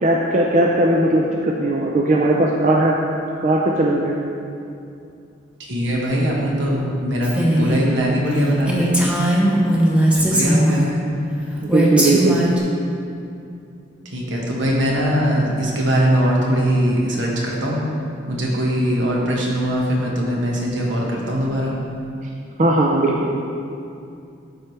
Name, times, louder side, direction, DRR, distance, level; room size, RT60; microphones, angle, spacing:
voice 1, 0.0-3.0 3.4-4.2 11.6-12.4 22.6-23.3, right 1 dB, 40° right, -2 dB, 0.5 m, -18 dB
voice 2, 5.6-8.9 10.3-10.8 14.0-17.8 18.3-21.7, equal, 75° right, -3 dB, 1.5 m, -21 dB
Female speech woman speaking, 7.2-7.8 8.3-8.4 8.7-11.0 11.7-12.6, right 1 dB, 5° right, 0.8 m, -18 dB
12.0 x 4.7 x 3.3 m, 2.5 s
head